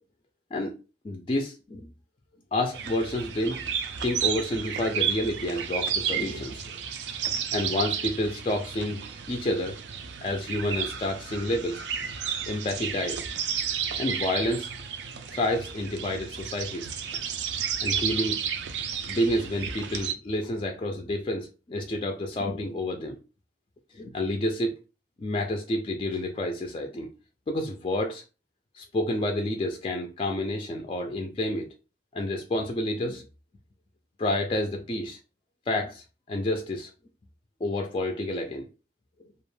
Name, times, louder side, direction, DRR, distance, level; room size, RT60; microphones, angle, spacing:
voice 1, 1.0-1.9 2.5-3.6 4.0-6.7 7.5-9.0 9.3-9.8 10.2-11.8 12.5-13.3 14.0-14.7 15.3-16.9 17.8-18.4 19.1-23.2 23.9-24.8 25.2-27.1 27.5-28.2 28.7-31.7 32.1-33.3 34.2-35.2 35.7-36.9 37.6-38.7, left 1 dB, 30° left, 0.3 m, -29 dB
sound 1, 2.7-20.1, right 7 dB, 85° right, 0.4 m, -32 dB
2.4 x 2.1 x 3.1 m
head